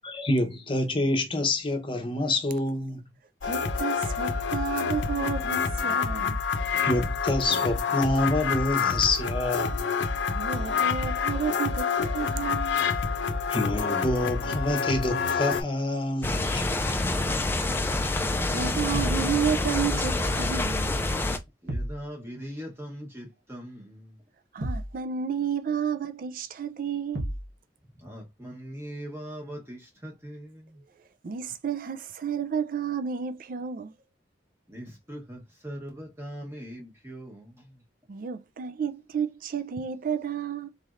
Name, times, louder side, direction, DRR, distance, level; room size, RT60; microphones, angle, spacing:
voice 1, 0.0-3.0 6.2-6.3 6.8-9.9 13.5-16.9, left 2 dB, 30° left, 0.8 m, -27 dB
sound 1, 3.4-15.6, left 5 dB, 80° left, 0.6 m, -28 dB
voice 2, 3.4-6.4 10.3-12.9 17.3-17.4 18.5-21.0 24.5-27.3 31.2-33.9 38.1-40.7, right 7 dB, 50° right, 0.4 m, -31 dB
sound 2, 16.2-21.4, left 2 dB, 10° left, 0.4 m, -27 dB
sound 3, 18.9-19.3 21.7-22.0 24.6-25.0 27.1-27.5, right 1 dB, 75° right, 1.1 m, -32 dB
voice 3, 21.6-24.0 28.0-30.6 34.7-37.5, equal, 15° right, 1.0 m, -40 dB
4.0 x 3.2 x 2.4 m
head